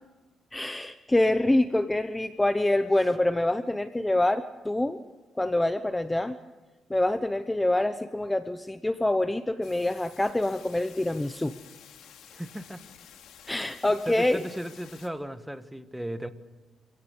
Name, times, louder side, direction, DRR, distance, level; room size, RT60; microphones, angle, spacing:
voice 1, 0.5-5.0 5.4-6.4 6.9-11.5 13.5-14.4, left 1 dB, 10° left, 11 dB, 0.9 m, -26 dB
sound 1, 9.6-15.1, left 9 dB, 80° left, 3.2 m, -51 dB
voice 2, 12.3-12.8 13.8-16.3, equal, 5° right, 10 dB, 1.5 m, -36 dB
27.0 x 17.0 x 8.3 m, 1.2 s
cardioid pair, 90°, 0 cm